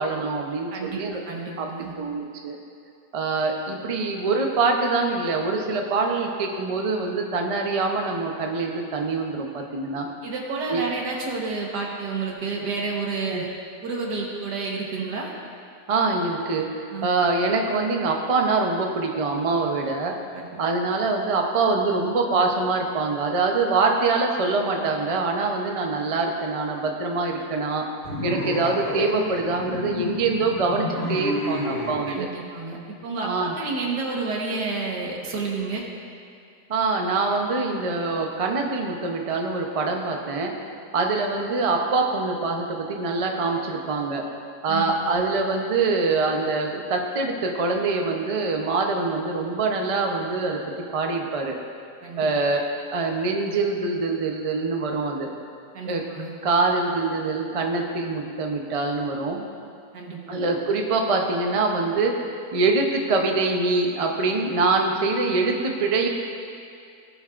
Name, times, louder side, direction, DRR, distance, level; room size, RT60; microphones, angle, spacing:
voice 1, 0.0-1.2 1.6-1.7 2.0-2.6 3.1-10.1 10.7-10.8 13.3-13.4 15.9-16.7 17.0-20.1 20.6-27.8 28.2-32.3 33.2-33.5 36.7-40.5 40.9-44.2 44.6-50.6 50.9-51.6 52.2-52.6 52.9-55.3 55.8-56.0 56.4-59.5 60.3-62.2 62.5-66.1, right 3 dB, 40° right, 2 dB, 0.5 m, -24 dB
voice 2, 0.7-1.9 10.2-13.5 13.8-15.3 16.9-17.1 20.3-20.5 32.1-35.8 44.7-45.2 52.0-52.3 55.7-56.3 59.9-60.4, right 4 dB, 80° right, -1 dB, 1.9 m, -30 dB
sound 1, 28.0-32.0, left 1 dB, 30° left, 2.8 m, -30 dB
18.0 x 7.6 x 2.5 m, 2.4 s
omnidirectional pair, 1.8 m